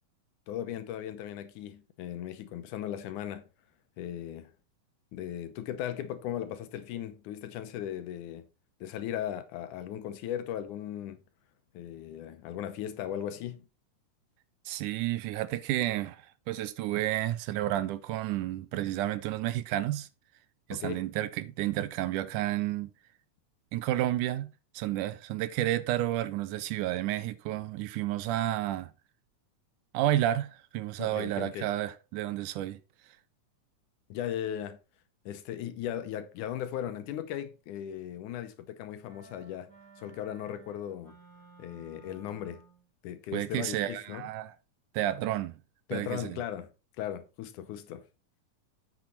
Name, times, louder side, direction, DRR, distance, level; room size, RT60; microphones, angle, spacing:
voice 1, 0.5-3.4 4.0-4.5 5.1-8.5 8.8-11.2 11.7-13.7 20.7-21.0 31.0-31.7 34.1-34.8 35.3-39.7 40.0-41.2 41.6-42.6 43.0-44.3 45.9-46.7 47.0-48.1, left 10 dB, 75° left, 2.3 m, -37 dB
voice 2, 14.7-20.1 20.7-22.9 23.7-28.9 29.9-32.8 43.3-44.5 44.9-45.6 45.9-46.4, right 14 dB, 80° right, 2.1 m, -31 dB
sound 1, 39.1-42.9, right 4 dB, 30° right, 3.7 m, -56 dB
8.6 x 6.0 x 4.1 m
omnidirectional pair, 3.8 m